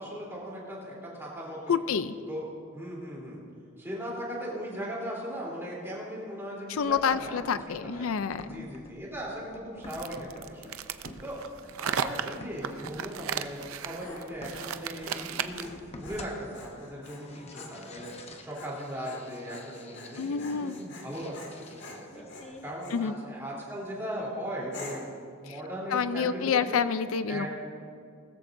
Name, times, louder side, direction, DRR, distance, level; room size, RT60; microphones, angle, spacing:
voice 1, 0.0-1.8 2.3-2.4 2.7-3.4 3.8-8.1 8.5-10.8 11.2-22.2 22.6-25.1 25.4-26.8 27.3-27.5, equal, 10° right, -5 dB, 3.3 m, -38 dB
voice 2, 1.7-2.2 6.7-8.7 20.2-20.8 22.9-23.1 25.9-27.5, left 6 dB, 75° left, 13 dB, 0.4 m, -28 dB
sound 1, 6.8-22.8, left 2 dB, 30° left, 0.9 m, -50 dB
sound 2, 9.9-15.8, right 8 dB, 75° right, 0.5 m, -35 dB
Dog, 13.6-23.0 23.6-24.0 24.7-25.2, left 2 dB, 55° left, 2.0 m, -47 dB
19.5 x 14.0 x 2.6 m, 2.4 s
head